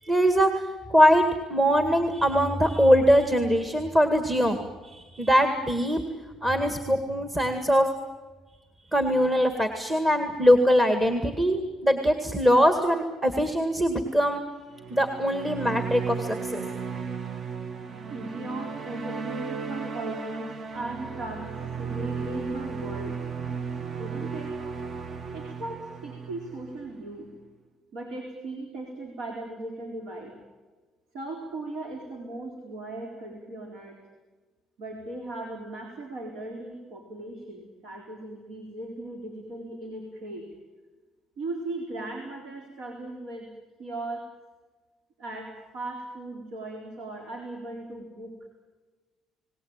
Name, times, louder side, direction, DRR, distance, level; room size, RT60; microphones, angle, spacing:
voice 1, 0.0-0.6 0.9-1.2 1.5-6.0 6.4-7.9 8.9-14.4 14.9-16.6, equal, 20° right, 7 dB, 2.0 m, -22 dB
sound 1, 14.7-27.2, right 5 dB, 45° right, 1.1 m, -35 dB
voice 2, 18.1-21.5 21.8-23.2 24.0-24.5 25.3-27.3 27.9-30.4 31.1-34.0 34.8-40.5 41.4-43.5 43.8-44.3 45.2-48.5, right 2 dB, 75° right, 2 dB, 4.1 m, -38 dB
30.0 x 19.0 x 8.9 m, 1.3 s
cardioid pair, 105°, 0 cm